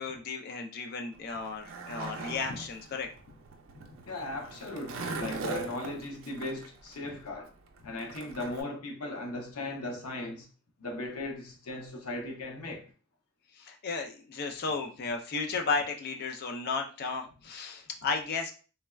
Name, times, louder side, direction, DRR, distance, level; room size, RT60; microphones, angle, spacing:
voice 1, 0.0-3.1 13.5-18.5, left 4 dB, 45° left, 0.3 m, -34 dB
Skateboard, 1.1-8.6, right 3 dB, 65° right, 0.4 m, -41 dB
voice 2, 4.1-7.5 7.8-10.5 10.8-12.9, left 2 dB, 80° left, 0.6 m, -37 dB
3.3 x 2.1 x 2.2 m
head